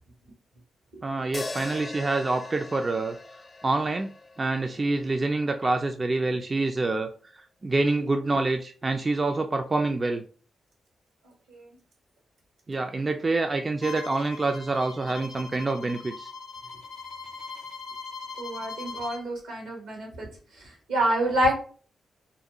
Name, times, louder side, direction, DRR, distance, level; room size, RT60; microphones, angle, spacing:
voice 1, 1.0-3.2 3.6-4.1 4.4-7.1 7.6-10.2 12.7-16.3, right 3 dB, 35° right, 5 dB, 0.3 m, -26 dB
sound 1, 1.3-5.6, left 2 dB, 40° left, 0.5 m, -41 dB
Bowed string instrument, 13.8-19.2, left 5 dB, 90° left, 0.5 m, -40 dB
voice 2, 18.4-20.3 20.6-21.5, right 1 dB, 85° right, 0 dB, 1.1 m, -27 dB
2.5 x 2.3 x 2.7 m, 0.41 s
supercardioid pair, 45°, 0 cm